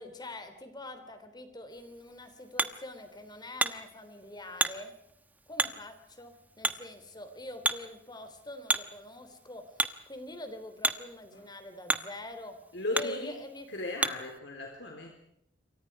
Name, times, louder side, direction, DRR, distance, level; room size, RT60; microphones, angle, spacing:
voice 1, 0.0-4.9 5.5-12.6 12.9-13.7, left 1 dB, 25° left, 8 dB, 3.4 m, -45 dB
Hammer, 1.7-14.4, right 2 dB, 10° right, 1.1 m, -36 dB
voice 2, 12.7-13.3 13.7-15.1, left 2 dB, 70° left, 2 dB, 4.0 m, -36 dB
28.0 x 24.0 x 4.8 m, 0.75 s
head